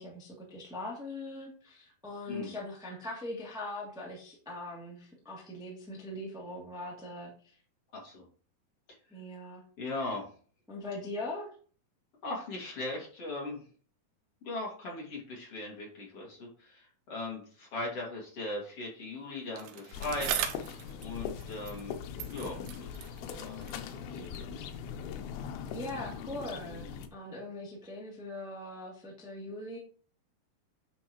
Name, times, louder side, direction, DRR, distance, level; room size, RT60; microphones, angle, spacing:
voice 1, 0.0-7.3 9.1-9.6 10.7-11.5 25.7-29.8, left 1 dB, ahead, -4 dB, 1.6 m, -41 dB
voice 2, 7.9-8.2 9.8-10.3 12.2-13.6 14.4-20.7 21.0-22.0 22.3-24.3, left 2 dB, 45° left, -2 dB, 3.0 m, -39 dB
Bicycle, 19.6-21.9 22.2-24.6 25.3-25.4, right 9 dB, 90° right, 2.8 m, -39 dB
sound 1, 19.9-27.1, left 7 dB, 90° left, 2.7 m, -41 dB
9.5 x 6.3 x 3.0 m, 0.42 s
omnidirectional pair, 4.3 m